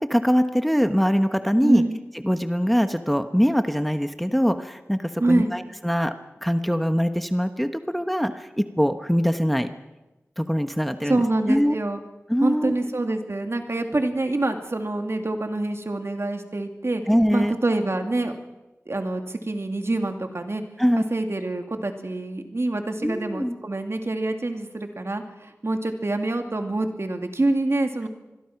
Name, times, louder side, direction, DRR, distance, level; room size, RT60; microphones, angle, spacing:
voice 1, 0.1-1.8 2.2-6.1 6.4-9.7 10.4-11.2 11.5-11.8 12.3-12.9 17.1-17.5 20.8-21.0 23.0-23.6, equal, ahead, 8 dB, 1.2 m, -22 dB
voice 2, 1.6-1.9 5.2-5.5 11.1-12.0 12.4-17.0 17.3-18.3 18.9-20.6 21.0-28.1, right 2 dB, 55° right, 5 dB, 2.6 m, -26 dB
26.5 x 21.5 x 6.0 m, 1.1 s
wide cardioid pair, 50°, 5 cm